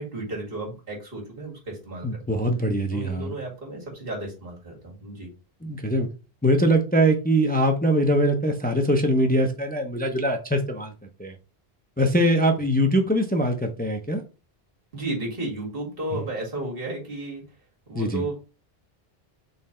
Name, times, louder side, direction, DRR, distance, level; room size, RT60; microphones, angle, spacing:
voice 1, 0.0-2.5 2.9-5.3 14.9-17.5 17.9-18.4, right 2 dB, 65° right, -2 dB, 2.1 m, -33 dB
voice 2, 2.0-3.3 5.6-6.1 6.4-10.9 11.2-11.3 12.0-14.2 16.1-16.2 17.9-18.2, equal, 15° left, 4 dB, 0.4 m, -22 dB
4.0 x 3.2 x 4.2 m, 0.32 s
omnidirectional pair, 1.1 m